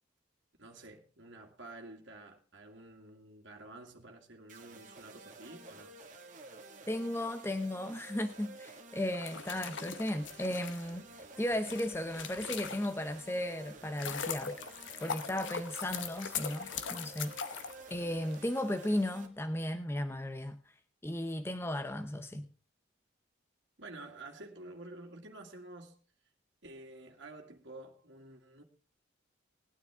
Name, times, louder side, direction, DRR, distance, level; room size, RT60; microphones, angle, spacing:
voice 1, 0.6-6.0 23.8-26.0 26.6-28.6, right 2 dB, 65° right, 2.2 m, -50 dB
sound 1, 4.5-19.3, right 2 dB, 40° right, 1.7 m, -52 dB
voice 2, 6.9-14.6 15.0-17.4 17.9-20.6 21.0-22.5, left 1 dB, 10° left, 0.6 m, -35 dB
sound 2, 9.1-13.2 13.7-18.4, left 7 dB, 70° left, 0.9 m, -41 dB
19.5 x 9.5 x 3.5 m
head